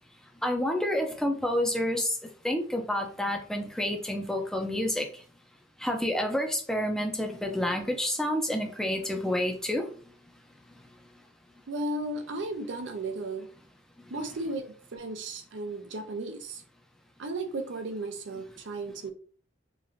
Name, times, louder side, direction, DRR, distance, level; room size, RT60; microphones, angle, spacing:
voice 1, 0.4-2.1 2.4-5.1 5.8-9.9 14.1-14.2, left 1 dB, 5° left, 3 dB, 0.4 m, -29 dB
voice 2, 11.7-13.5 14.1-16.6 17.2-19.1, right 2 dB, 70° right, 6 dB, 0.5 m, -35 dB
3.0 x 2.5 x 2.5 m, 0.41 s
head